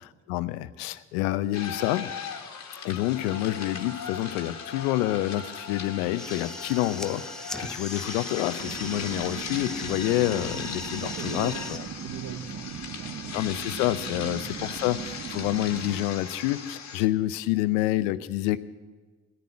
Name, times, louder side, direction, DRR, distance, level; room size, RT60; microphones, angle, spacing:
voice 1, 0.3-2.1 2.8-11.8 13.3-18.6, left 15 dB, 80° left, 14 dB, 0.7 m, -28 dB
sound 1, 1.5-17.1, left 6 dB, 45° left, 1.9 m, -38 dB
sound 2, 6.0-11.8, left 1 dB, ahead, 0.8 m, -40 dB
sound 3, 8.6-16.0, right 8 dB, 40° right, 0.7 m, -39 dB
voice 2, 11.0-13.4 14.2-14.4, right 9 dB, 65° right, 10 dB, 1.2 m, -40 dB
14.0 x 11.0 x 8.4 m, 1.3 s
hypercardioid pair, 45°, 37 cm